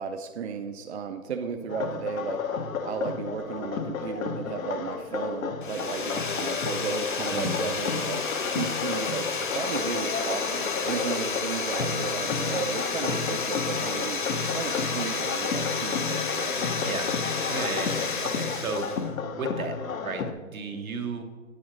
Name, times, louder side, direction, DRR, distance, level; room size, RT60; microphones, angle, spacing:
voice 1, 0.0-2.4 2.8-8.2 8.5-9.3 9.5-14.2 14.5-16.9 20.7-21.0, right 6 dB, 55° right, 5 dB, 0.5 m, -34 dB
sound 1, 1.7-20.3, left 6 dB, 75° left, 0.8 m, -33 dB
sound 2, 5.6-19.1, left 4 dB, 40° left, 0.6 m, -31 dB
voice 2, 17.5-19.7 20.0-21.2, right 4 dB, 85° right, 5 dB, 1.3 m, -34 dB
8.5 x 3.8 x 6.1 m, 1.5 s
hypercardioid pair, 165°, 41 cm